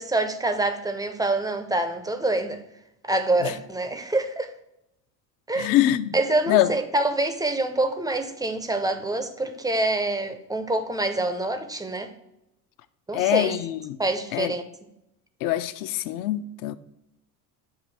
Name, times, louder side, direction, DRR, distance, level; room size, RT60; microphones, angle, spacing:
voice 1, 0.0-2.6 3.0-4.5 5.5-5.7 6.1-12.1 13.1-13.5 14.0-14.6, right 2 dB, 10° right, 0.5 m, -26 dB
voice 2, 5.6-6.2 6.5-6.7 13.1-14.0 14.3-14.5 15.4-16.8, left 13 dB, 45° left, 0.5 m, -24 dB
7.0 x 2.6 x 5.3 m
hypercardioid pair, 65°, 48 cm